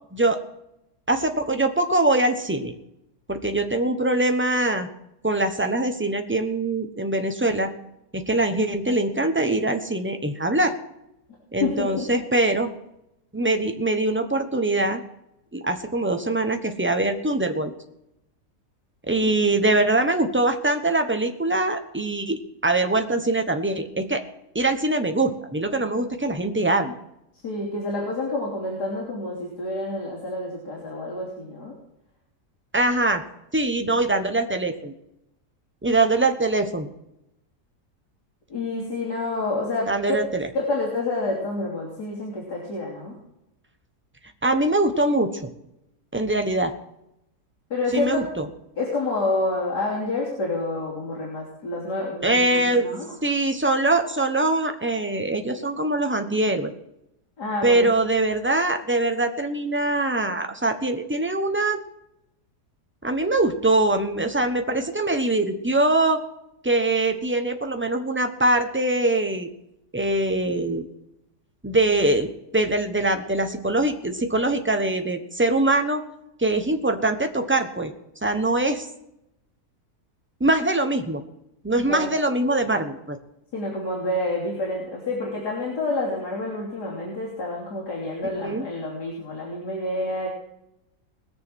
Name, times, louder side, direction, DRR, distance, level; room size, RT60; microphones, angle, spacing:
voice 1, 1.1-2.7 3.3-4.9 5.2-7.7 8.1-10.7 11.5-12.7 13.3-15.0 15.5-17.7 19.1-24.2 24.5-26.9 32.7-33.2 33.5-34.9 35.8-36.9 39.9-40.5 44.4-45.5 46.1-46.7 47.9-48.5 52.2-52.9 53.2-56.7 57.6-61.8 63.0-66.2 66.6-69.5 69.9-70.9 71.6-76.0 76.4-77.9 78.2-78.9 80.4-81.2 81.6-83.2 88.4-88.7, right 2 dB, 10° right, 6 dB, 0.9 m, -23 dB
voice 2, 11.6-12.1 27.3-31.7 38.5-40.2 40.5-43.1 47.7-48.2 48.8-53.1 57.4-57.9 81.9-82.1 83.5-90.3, left 2 dB, 85° left, -5 dB, 3.8 m, -28 dB
20.5 x 7.0 x 6.3 m, 0.84 s
omnidirectional pair, 1.7 m